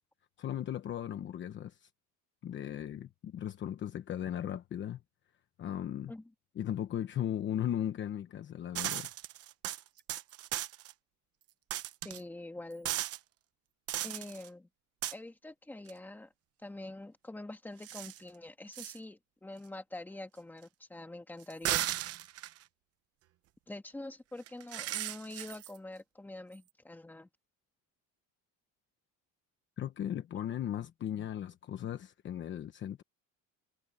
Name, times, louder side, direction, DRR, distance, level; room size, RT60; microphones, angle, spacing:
voice 1, 0.4-1.9 2.4-5.0 5.6-6.1 6.5-9.1 29.8-33.0, left 10 dB, 35° left, 1.0 m, -37 dB
sound 1, 8.8-10.9 11.7-12.2 12.9-13.2 13.9-14.5 15.0-15.1 15.9-16.0 17.8-18.2 18.7-19.0 21.4-22.6 24.5-25.8, right 14 dB, 45° right, 0.9 m, -36 dB
voice 2, 12.0-12.9 14.0-14.7 15.1-16.3 16.6-21.9 23.7-27.3, left 2 dB, 5° left, 1.7 m, -45 dB
cardioid pair, 175°, 34 cm